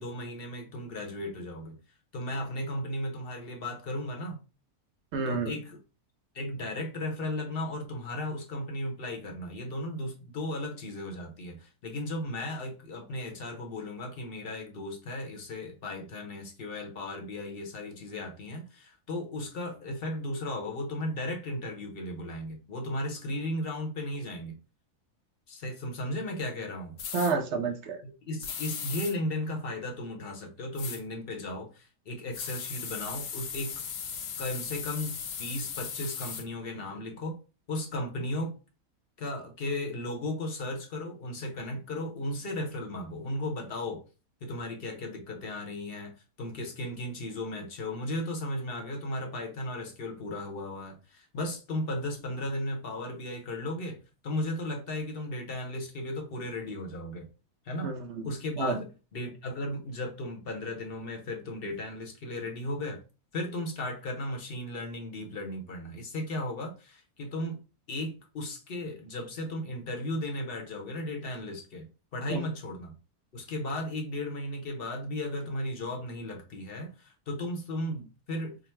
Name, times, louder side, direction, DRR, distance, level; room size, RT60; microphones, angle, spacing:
voice 1, 0.0-1.8 2.1-4.4 5.3-5.8 6.3-24.6 25.5-27.0 28.0-33.8 34.4-37.4 37.7-38.5 39.2-44.0 44.4-46.1 46.4-54.0 54.2-57.3 57.6-57.9 58.2-58.9 59.1-63.0 63.3-67.6 67.9-72.9 73.3-78.6, left 1 dB, 45° left, 0.9 m, -35 dB
voice 2, 5.1-5.5 27.1-28.0 57.8-58.2 58.6-58.8 72.3-72.5, right 4 dB, 65° right, 0.7 m, -30 dB
sound 1, 27.0-27.3 28.4-29.1 30.8-31.0 32.3-36.4, left 7 dB, 75° left, 1.3 m, -37 dB
3.8 x 2.1 x 4.4 m
omnidirectional pair, 1.8 m